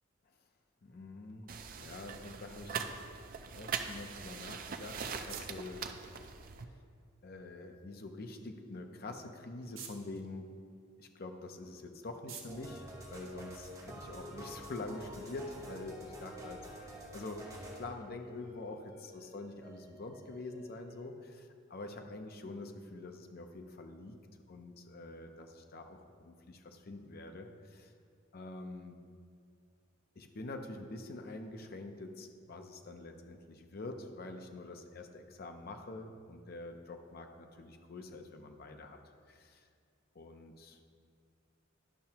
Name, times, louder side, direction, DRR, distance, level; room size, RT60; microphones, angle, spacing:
voice 1, 0.8-1.5 1.8-2.8 3.5-5.8 7.2-10.6 11.0-24.2 24.5-27.9 28.3-29.0 30.2-39.0 39.3-39.7 40.1-40.8, left 2 dB, 50° left, 5 dB, 0.6 m, -46 dB
sound 1, 1.5-6.6, right 6 dB, 45° right, 0.4 m, -42 dB
sound 2, 4.5-13.9, right 7 dB, 90° right, 1.0 m, -56 dB
sound 3, 12.5-21.0, equal, 15° right, 1.0 m, -49 dB
10.5 x 5.6 x 2.8 m, 2.2 s
head